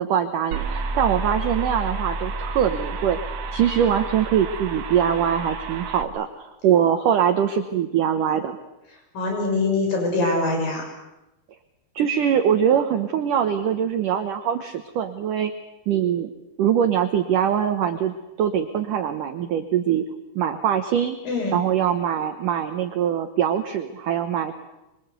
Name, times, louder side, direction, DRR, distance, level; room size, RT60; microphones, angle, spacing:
voice 1, 0.0-3.2 3.5-8.6 12.0-15.5 15.9-16.3 16.6-20.0 20.4-21.2 21.5-24.5, right 9 dB, 80° right, 8 dB, 1.8 m, -22 dB
sound 1, 0.5-6.0, right 3 dB, 65° right, 1.8 m, -30 dB
voice 2, 9.1-10.9 21.2-21.6, left 3 dB, 50° left, 2 dB, 7.8 m, -23 dB
25.0 x 24.0 x 8.2 m, 0.96 s
omnidirectional pair, 5.4 m